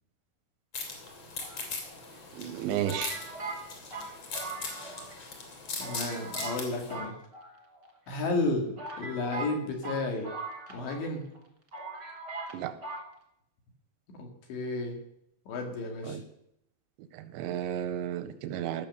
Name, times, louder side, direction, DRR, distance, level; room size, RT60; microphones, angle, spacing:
sound 1, 0.7-6.9, left 4 dB, 40° left, 3.2 m, -40 dB
sound 2, 1.4-2.2 2.8-5.1 5.4-5.5 5.8-6.6 6.9-7.9 8.4-8.5 8.8-11.1 11.3-11.4 11.7-12.5 12.8-13.0, right 3 dB, 40° right, 1.5 m, -40 dB
voice 1, 2.3-3.2 12.5-12.7 16.0-16.2 17.1-18.9, right 11 dB, 85° right, 11 dB, 3.0 m, -33 dB
voice 2, 5.8-7.1 8.1-10.3 10.7-11.2 14.2-15.0 15.5-16.2, left 2 dB, 70° left, 2 dB, 4.3 m, -32 dB
16.0 x 6.7 x 6.7 m, 0.77 s
omnidirectional pair, 5.3 m